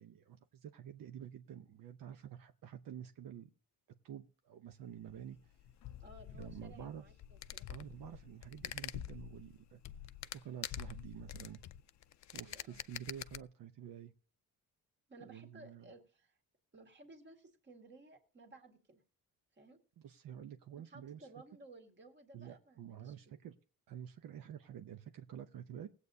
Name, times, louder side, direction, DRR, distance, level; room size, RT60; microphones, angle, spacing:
voice 1, 0.0-3.5 4.0-5.6 6.3-7.0 7.7-9.8 10.3-11.6 12.3-14.1 15.2-15.9 20.0-21.3 22.3-23.6 23.9-25.9, right 9 dB, 75° right, 7 dB, 0.8 m, -49 dB
sound 1, 4.8-13.4, left 11 dB, 55° left, 0.5 m, -47 dB
voice 2, 6.0-7.7 12.3-12.8 15.1-16.4 16.7-19.0 19.5-19.8 20.8-23.4, right 2 dB, 30° right, 4 dB, 1.9 m, -58 dB
20.0 x 8.2 x 2.7 m, 0.40 s
wide cardioid pair, 170°, 35 cm